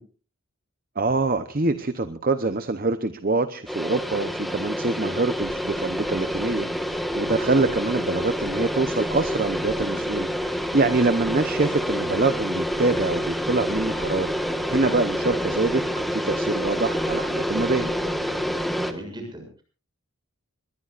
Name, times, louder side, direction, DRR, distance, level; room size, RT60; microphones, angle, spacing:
voice 1, 1.0-14.3 14.7-17.9, right 3 dB, 40° right, 10 dB, 0.8 m, -25 dB
sound 1, 3.7-18.9, equal, ahead, 1.4 m, -28 dB
sound 2, 5.4-18.7, equal, 60° right, 6.4 m, -45 dB
voice 2, 18.9-19.6, equal, 20° right, 3 dB, 6.9 m, -38 dB
23.5 x 21.5 x 2.5 m, 0.38 s
head